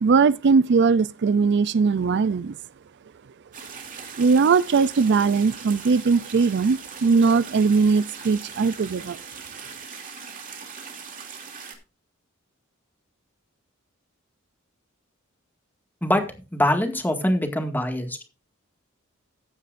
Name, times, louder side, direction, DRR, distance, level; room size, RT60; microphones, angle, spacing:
voice 1, 0.0-2.5 4.2-9.2, right 5 dB, 55° right, 0.4 m, -20 dB
sound 1, 3.5-11.7, right 6 dB, 40° right, 2.7 m, -40 dB
voice 2, 16.5-18.2, left 1 dB, 10° left, 1.9 m, -23 dB
15.0 x 9.8 x 2.5 m
head